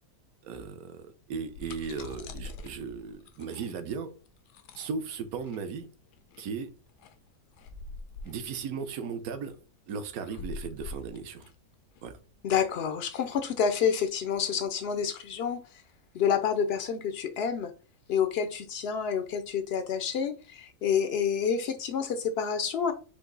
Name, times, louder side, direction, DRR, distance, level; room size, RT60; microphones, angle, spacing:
voice 1, 0.4-4.1 4.8-5.9 6.4-6.7 8.2-9.6 9.9-11.4 12.0-12.2, right 5 dB, 70° right, 10 dB, 1.1 m, -36 dB
sound 1, 1.2-12.7, left 3 dB, 90° left, 1.2 m, -45 dB
voice 2, 12.4-15.8 16.1-17.7 18.1-22.9, left 7 dB, 75° left, 9 dB, 0.5 m, -28 dB
5.1 x 2.6 x 3.8 m, 0.35 s
omnidirectional pair, 1.6 m